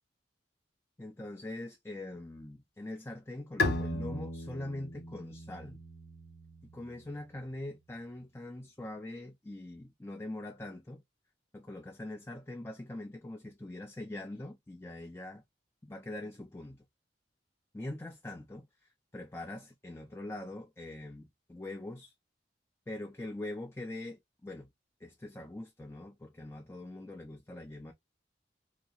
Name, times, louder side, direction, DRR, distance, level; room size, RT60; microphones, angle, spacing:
voice 1, 1.0-5.8 6.7-11.0 11.5-15.4 15.8-16.8 17.7-18.6 19.1-22.1 22.9-24.7 25.0-27.9, left 1 dB, 15° left, 0.4 m, -43 dB
Bowed string instrument, 3.6-7.1, left 2 dB, 60° left, 0.7 m, -36 dB
2.8 x 2.7 x 2.4 m
head